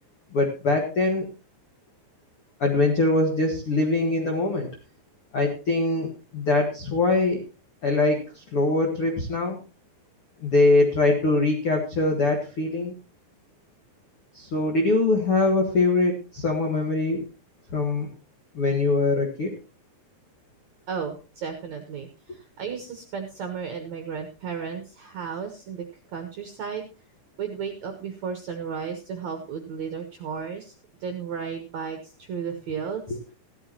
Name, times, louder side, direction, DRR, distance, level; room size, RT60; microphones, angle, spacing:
voice 1, 0.3-1.2 2.6-4.7 5.3-7.4 7.8-9.6 10.4-12.9 14.3-17.2 17.7-18.1 18.5-19.5 33.1-33.2, left 2 dB, 65° left, 3 dB, 1.3 m, -23 dB
voice 2, 20.9-25.9 26.1-26.9 27.4-30.7 31.0-33.2, right 6 dB, 70° right, 5 dB, 1.7 m, -34 dB
16.0 x 12.5 x 3.0 m, 0.32 s
omnidirectional pair, 5.1 m